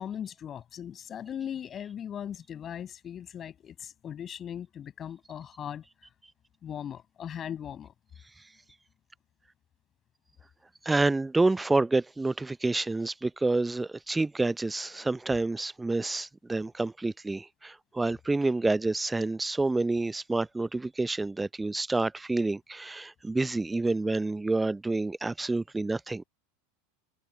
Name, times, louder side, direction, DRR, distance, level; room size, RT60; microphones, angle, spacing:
voice 1, 0.0-5.8 6.6-7.9, left 9 dB, 30° left, 7.6 m, -39 dB
voice 2, 10.8-26.2, right 2 dB, 10° right, 0.7 m, -28 dB
figure-of-eight pair, 85°, 0 cm